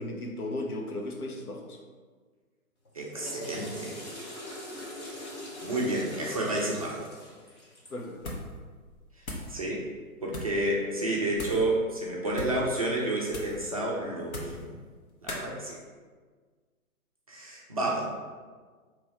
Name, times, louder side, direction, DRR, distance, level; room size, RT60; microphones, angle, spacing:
voice 1, 0.0-1.8 7.9-8.4, left 1 dB, 85° left, 1 dB, 0.9 m, -36 dB
Water / Toilet flush, 2.8-8.1, left 1 dB, 20° left, 0.6 m, -42 dB
voice 2, 2.9-4.0 5.6-7.1 9.5-9.8 10.2-14.8 15.2-15.8 17.3-18.1, right 1 dB, 30° right, -4 dB, 0.4 m, -30 dB
sound 1, 8.2-8.6 8.8-9.5 10.3-10.6 11.3-11.7 12.3-12.6 13.3-13.6 14.2-14.7 15.3-15.5, left 1 dB, 70° left, 1.1 m, -39 dB
3.0 x 3.0 x 4.5 m, 1.5 s
figure-of-eight pair, 130°, 43 cm